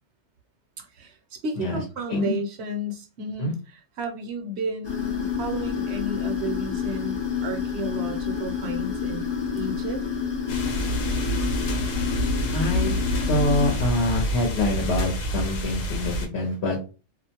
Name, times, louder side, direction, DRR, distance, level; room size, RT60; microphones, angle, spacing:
voice 1, 1.0-9.2 9.5-10.0, right 1 dB, 65° right, 4 dB, 0.8 m, -33 dB
sound 1, 4.8-13.7, left 6 dB, 30° left, 0.5 m, -29 dB
sound 2, 10.5-16.3, equal, 90° left, 1.0 m, -27 dB
voice 2, 12.5-13.0 13.3-16.8, left 1 dB, 60° left, 0 dB, 0.9 m, -25 dB
2.4 x 2.1 x 2.8 m, 0.32 s
omnidirectional pair, 1.3 m